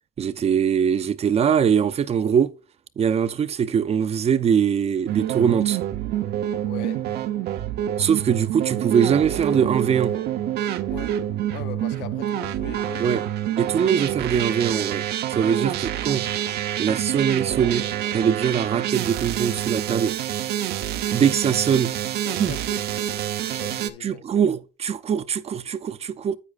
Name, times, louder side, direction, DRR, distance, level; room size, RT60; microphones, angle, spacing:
voice 1, 0.2-2.5 3.0-5.8 8.0-10.2 13.0-13.2 13.6-16.3 16.8-17.9 18.1-20.1 21.1-21.9 22.4-22.5 24.0-26.4, right 7 dB, 40° right, 0.6 m, -22 dB
sound 1, 5.1-23.9, right 11 dB, 75° right, 0.7 m, -27 dB
voice 2, 6.6-7.1 10.9-13.1 13.6-13.7 15.5-15.7 22.2-22.9 23.3-24.3, left 10 dB, 85° left, 0.8 m, -40 dB
9.8 x 8.4 x 2.4 m
cardioid pair, 110°, 17 cm